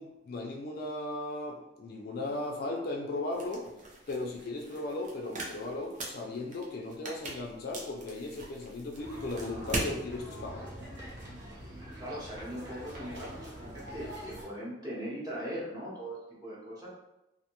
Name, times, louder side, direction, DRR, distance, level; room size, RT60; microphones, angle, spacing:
voice 1, 0.0-3.7 4.1-10.7, left 2 dB, 55° left, 2 dB, 0.4 m, -37 dB
sound 1, 3.3-10.0, right 1 dB, 45° right, 0.5 m, -40 dB
sound 2, 9.0-14.4, equal, 70° right, 0.8 m, -44 dB
voice 2, 11.5-16.9, equal, 20° right, -7 dB, 0.8 m, -40 dB
2.5 x 2.1 x 2.9 m, 0.91 s
head